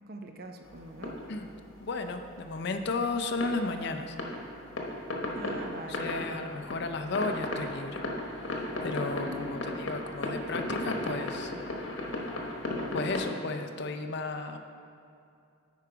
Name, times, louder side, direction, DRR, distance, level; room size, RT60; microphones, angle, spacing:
voice 1, 0.1-1.2 5.2-6.2 9.1-9.7, right 2 dB, 45° right, 5 dB, 0.5 m, -43 dB
sound 1, 0.6-2.2 3.3-13.2, left 1 dB, 70° left, 1.1 m, -35 dB
voice 2, 1.8-4.2 5.9-11.5 12.9-14.6, left 3 dB, 55° left, 8 dB, 0.5 m, -34 dB
9.3 x 4.7 x 4.9 m, 2.6 s
head